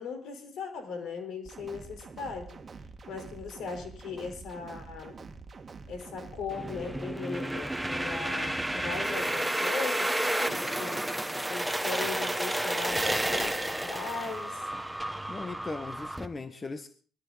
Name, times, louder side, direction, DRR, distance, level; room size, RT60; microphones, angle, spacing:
voice 1, 0.0-2.6 3.1-5.2 5.9-11.1 11.5-14.6, left 5 dB, 75° left, 6 dB, 4.3 m, -38 dB
sound 1, 1.4-7.1, right 4 dB, 35° right, 1.8 m, -46 dB
sound 2, 6.5-16.3, right 1 dB, 5° right, 1.3 m, -31 dB
voice 2, 15.3-17.0, left 3 dB, 30° left, 10 dB, 1.3 m, -38 dB
20.5 x 14.0 x 4.1 m, 0.41 s
cardioid pair, 90°, 0 cm